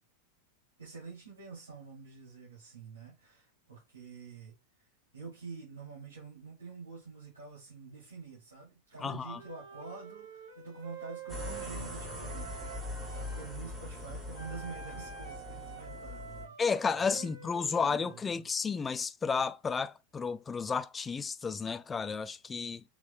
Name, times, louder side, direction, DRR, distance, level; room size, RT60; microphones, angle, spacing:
voice 1, 0.8-4.9 5.1-16.5 17.0-18.5, right 4 dB, 75° right, 2.7 m, -47 dB
voice 2, 9.0-9.4 16.6-22.8, left 5 dB, 15° left, 0.4 m, -32 dB
Wind instrument woodwind instrument, 9.3-13.5 14.3-18.2, right 6 dB, 55° right, 2.3 m, -48 dB
sound 1, 11.3-16.4, left 2 dB, 15° right, 2.7 m, -41 dB
6.2 x 3.5 x 2.3 m
figure-of-eight pair, 90°, 0 cm